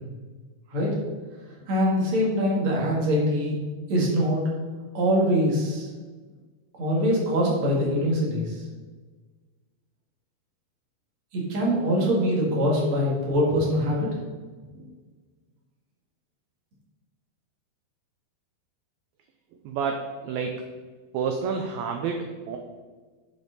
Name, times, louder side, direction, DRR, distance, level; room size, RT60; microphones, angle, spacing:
voice 1, 1.7-3.6 3.9-4.4 4.9-5.9 6.8-8.6 11.3-14.1, equal, 40° right, -3 dB, 2.4 m, -23 dB
voice 2, 19.6-20.6 21.1-22.6, right 5 dB, 80° right, 4 dB, 2.3 m, -29 dB
10.0 x 5.3 x 4.0 m, 1.4 s
omnidirectional pair, 4.6 m